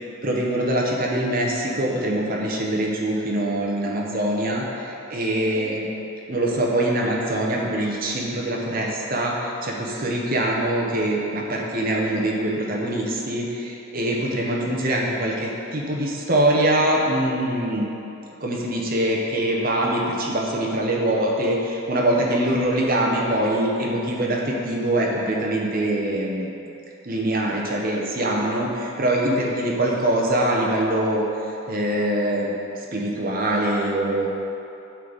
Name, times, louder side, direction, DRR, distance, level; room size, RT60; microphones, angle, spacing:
voice 1, 0.2-5.9 6.3-17.8 18.4-26.5 27.0-31.2 31.7-34.3, right 1 dB, 40° right, -2 dB, 1.0 m, -23 dB
8.2 x 4.1 x 6.2 m, 2.9 s
head